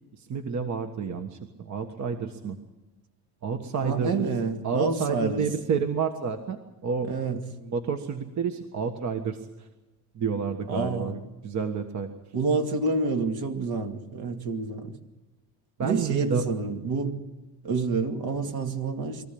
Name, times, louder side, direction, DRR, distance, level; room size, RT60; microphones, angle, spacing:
voice 1, 0.1-2.6 3.4-4.2 4.6-7.1 7.6-9.7 10.1-12.1 15.8-16.4, right 6 dB, 45° right, 6 dB, 1.5 m, -30 dB
voice 2, 3.8-5.4 7.1-7.4 10.7-11.1 12.3-15.0 15.8-17.2 17.6-19.3, right 3 dB, 65° right, 4 dB, 2.5 m, -28 dB
23.5 x 15.0 x 8.7 m, 1.1 s
cardioid pair, 115°, 40 cm